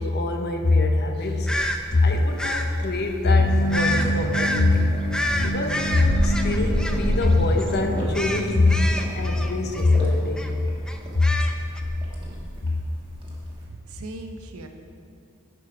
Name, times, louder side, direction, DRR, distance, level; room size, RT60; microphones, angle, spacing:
voice 1, 0.0-1.5 1.9-5.1 5.4-10.4 11.1-11.3, left 2 dB, 50° left, 4 dB, 0.8 m, -22 dB
sound 1, 1.5-1.8 2.4-2.7 3.7-4.1 4.3-4.6 5.1-7.3 7.6-7.8 8.1-10.0 10.4-10.5 10.9-11.8, left 1 dB, 5° left, 0.4 m, -28 dB
sound 2, 1.5-13.6, equal, 25° right, 1.4 m, -33 dB
sound 3, 3.3-11.0, right 1 dB, 25° left, 1.5 m, -30 dB
voice 2, 13.6-14.7, right 2 dB, 70° right, 5 dB, 0.7 m, -38 dB
8.1 x 5.3 x 5.9 m, 2.4 s
head